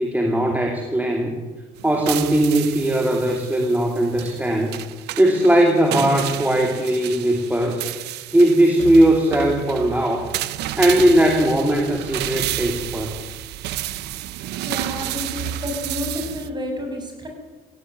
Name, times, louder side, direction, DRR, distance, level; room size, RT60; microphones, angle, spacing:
voice 1, 0.0-1.4 1.8-4.8 5.2-7.8 8.3-10.3 10.8-13.2, right 1 dB, 10° right, 2 dB, 2.8 m, -19 dB
sound 1, 1.8-16.5, right 13 dB, 80° right, 0.9 m, -31 dB
voice 2, 14.6-17.3, left 1 dB, 25° right, 3 dB, 7.1 m, -30 dB
17.0 x 16.5 x 9.5 m, 1.3 s
cardioid pair, 110°, 17 cm